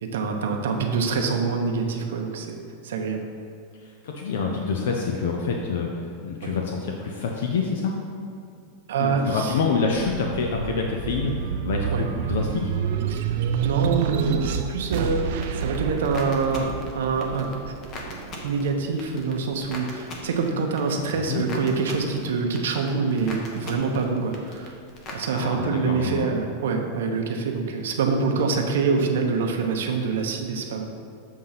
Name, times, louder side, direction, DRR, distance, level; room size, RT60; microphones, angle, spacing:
voice 1, 0.0-2.6 2.8-3.2 6.4-6.5 8.9-9.5 11.9-12.0 13.1-13.4 13.6-15.3 15.5-16.7 16.9-17.7 18.4-24.7 25.1-30.9, right 4 dB, 90° right, 3 dB, 0.9 m, -25 dB
voice 2, 3.8-7.9 9.0-12.6 21.3-21.4 25.3-26.3, left 4 dB, 65° left, 1 dB, 0.7 m, -27 dB
sound 1, 9.4-20.1 20.6-21.8, right 7 dB, 50° right, 0.4 m, -29 dB
sound 2, 14.9-25.3, left 2 dB, 25° left, 0.8 m, -42 dB
7.4 x 3.8 x 5.7 m, 2.4 s
supercardioid pair, 180°, 0 cm